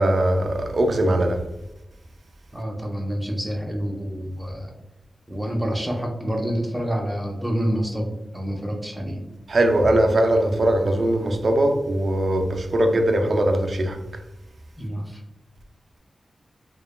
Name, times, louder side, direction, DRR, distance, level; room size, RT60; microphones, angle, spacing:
voice 1, 0.0-1.5 9.5-14.2, right 1 dB, 55° right, 0.3 m, -21 dB
voice 2, 2.5-4.7 5.3-9.2 14.8-15.2, equal, 5° right, 0.6 m, -28 dB
3.1 x 2.1 x 2.2 m
wide cardioid pair, 90°, 0 cm